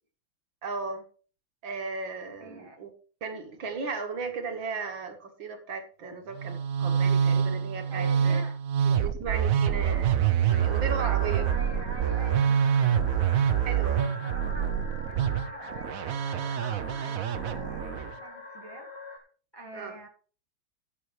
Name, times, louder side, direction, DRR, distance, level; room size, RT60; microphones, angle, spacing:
voice 1, 0.6-1.0 1.6-2.9 3.2-8.4 8.9-11.5 13.7-14.1 19.7-20.0, right 4 dB, 65° right, 5 dB, 2.2 m, -36 dB
voice 2, 2.4-2.8 7.9-8.6 11.0-13.1 14.0-19.3 19.5-20.1, right 1 dB, 15° left, 1 dB, 1.3 m, -45 dB
Musical instrument, 6.3-18.1, right 8 dB, 80° right, 0.7 m, -26 dB
sound 1, 10.5-19.2, left 2 dB, 35° left, 1.6 m, -44 dB
16.0 x 7.1 x 3.2 m, 0.39 s
omnidirectional pair, 2.3 m